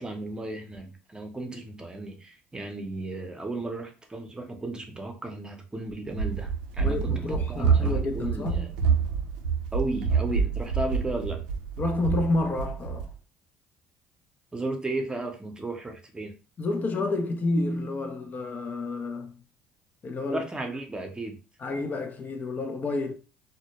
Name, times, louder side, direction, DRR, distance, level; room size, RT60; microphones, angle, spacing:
voice 1, 0.0-8.7 9.7-11.4 14.5-16.3 20.3-21.4, right 2 dB, 20° right, 0.7 m, -34 dB
Run, 6.1-13.1, right 6 dB, 90° right, 0.4 m, -27 dB
voice 2, 6.8-8.7 11.8-13.1 16.6-19.4 20.0-20.5 21.6-23.1, left 2 dB, 40° left, 0.4 m, -29 dB
2.1 x 2.1 x 2.9 m
supercardioid pair, 75°, 5 cm